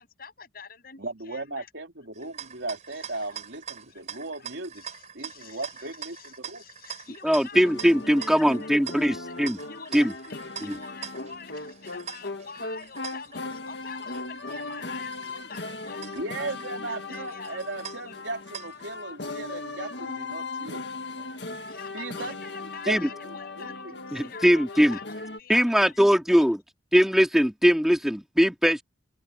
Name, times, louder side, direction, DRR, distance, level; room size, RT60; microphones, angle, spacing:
voice 1, 0.0-1.7 2.9-3.1 3.9-4.0 4.7-9.3 9.7-17.6 18.1-18.2 21.7-26.1 26.3-26.5, left 5 dB, 55° left, 7.8 m, -46 dB
voice 2, 1.0-4.9 5.1-6.6 16.1-20.8 21.1-21.3 21.9-22.3 22.9-23.9, right 2 dB, 85° right, 3.5 m, -37 dB
sound 1, 2.1-19.0, right 8 dB, 40° right, 7.7 m, -44 dB
voice 3, 7.2-9.6 9.9-10.1 10.6-10.8 22.9-23.1 24.1-25.0 25.5-26.6 26.9-28.8, equal, ahead, 2.6 m, -21 dB
sound 2, 7.5-25.4, left 3 dB, 70° left, 1.9 m, -38 dB
open air
head